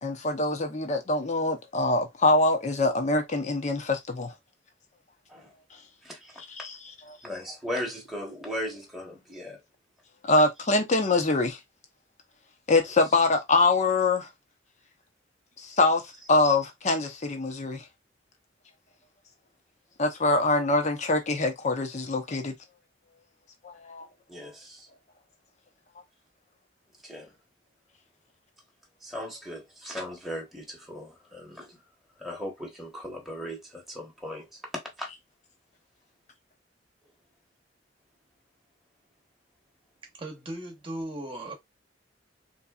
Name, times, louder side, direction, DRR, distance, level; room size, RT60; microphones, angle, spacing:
voice 1, 0.0-4.3 5.7-5.8 6.5-6.8 7.1-7.2 10.2-11.6 12.7-14.3 15.6-16.0 16.3-17.9 20.0-22.5 23.6-24.1, left 2 dB, 40° left, 0.8 m, -24 dB
voice 2, 6.0-6.4 7.2-9.6 24.3-24.9 27.0-27.3 29.0-31.8 32.2-34.6 35.0-35.1, equal, ahead, 1.1 m, -37 dB
voice 3, 40.1-41.5, right 1 dB, 30° right, 1.0 m, -37 dB
3.9 x 2.7 x 2.3 m
head